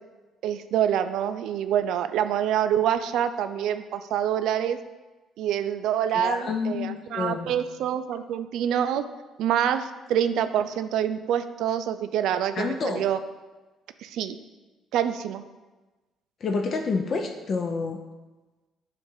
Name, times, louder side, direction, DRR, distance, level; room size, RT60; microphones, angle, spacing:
voice 1, 0.4-4.8 5.4-9.0 9.4-13.2 14.0-14.4 14.9-15.4, right 10 dB, 75° right, 11 dB, 0.3 m, -26 dB
voice 2, 6.1-7.7 12.6-13.1 16.4-18.0, left 4 dB, 50° left, 3 dB, 0.5 m, -28 dB
7.0 x 2.5 x 5.4 m, 1.2 s
supercardioid pair, 75°, 0 cm